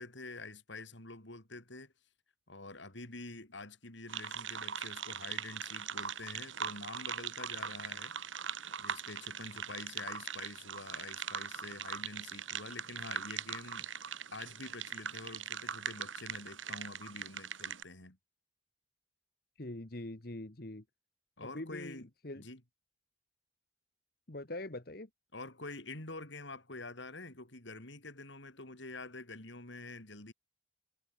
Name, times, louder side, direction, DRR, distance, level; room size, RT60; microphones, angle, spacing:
voice 1, 0.0-1.9 2.5-8.1 8.8-18.2 21.4-22.1 22.3-22.6 25.3-30.3, left 2 dB, 70° left, 4.2 m, -47 dB
sound 1, 4.1-17.8, right 7 dB, 85° right, 3.8 m, -41 dB
voice 2, 19.6-20.8 21.5-22.4 24.3-25.1, left 1 dB, 50° left, 1.5 m, -43 dB
head